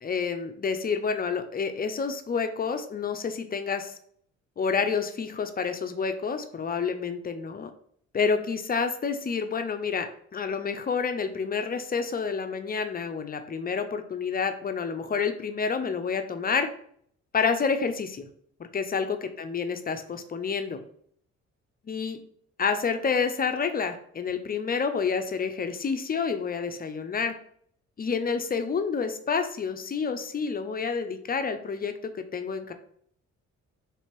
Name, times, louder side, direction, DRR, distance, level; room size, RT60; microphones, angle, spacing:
voice 1, 0.0-3.9 4.6-7.7 8.1-16.7 17.3-18.3 18.7-20.8 21.9-22.2 22.6-27.3 28.0-31.9 32.3-32.7, left 5 dB, 30° left, 8 dB, 0.5 m, -29 dB
3.3 x 2.9 x 4.5 m, 0.63 s
cardioid pair, 90°, 30 cm